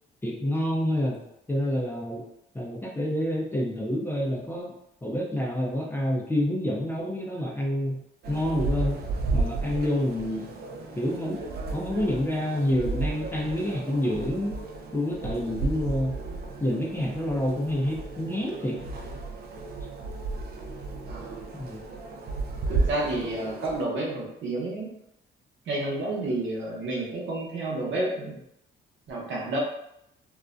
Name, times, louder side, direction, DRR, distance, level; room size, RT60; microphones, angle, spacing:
voice 1, 0.2-1.2 1.5-2.2 2.5-4.7 5.0-8.0 8.3-9.0 9.3-10.4 11.0-11.4 11.7-14.6 14.9-16.2 16.6-18.8 21.5-21.8, left 1 dB, 10° left, -2 dB, 0.4 m, -28 dB
sound 1, 8.2-23.8, right 3 dB, 50° right, 0.4 m, -33 dB
voice 2, 21.0-21.4 22.7-25.0 25.7-28.4 29.1-29.6, right 2 dB, 70° right, -3 dB, 0.9 m, -30 dB
2.4 x 2.1 x 2.4 m, 0.79 s
cardioid pair, 90°, 20 cm